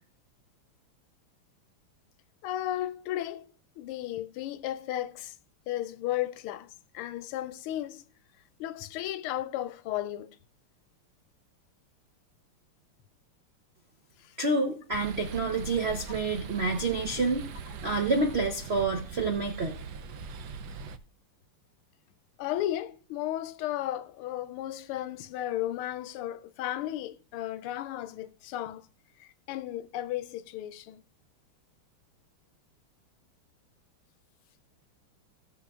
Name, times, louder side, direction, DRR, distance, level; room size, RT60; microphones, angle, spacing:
voice 1, 2.4-3.5 3.8-5.4 5.7-8.1 8.6-10.4 14.2-14.4 22.4-28.9 29.2-31.0, left 13 dB, 80° left, 1.4 m, -34 dB
voice 2, 14.4-17.4 17.8-19.8, right 3 dB, 60° right, 0.6 m, -28 dB
sound 1, 14.9-21.0, right 5 dB, 85° right, 0.9 m, -41 dB
16.0 x 7.2 x 2.4 m
omnidirectional pair, 2.4 m